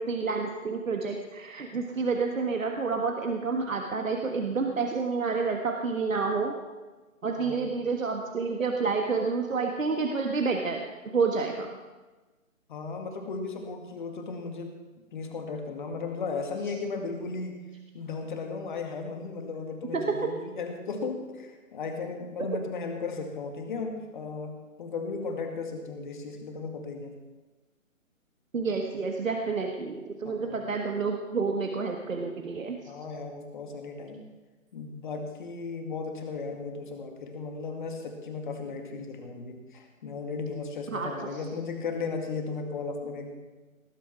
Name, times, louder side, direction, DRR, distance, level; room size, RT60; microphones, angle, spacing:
voice 1, 0.0-6.6 7.2-11.8 19.9-20.3 28.5-32.8 40.9-41.4, right 4 dB, 70° right, 3 dB, 1.6 m, -29 dB
voice 2, 7.3-7.7 12.7-14.7 15.1-17.6 17.9-27.1 30.2-30.7 32.9-34.2 34.7-43.3, left 4 dB, 35° left, 4 dB, 2.2 m, -36 dB
19.0 x 9.4 x 6.0 m, 1.2 s
figure-of-eight pair, 145°, 41 cm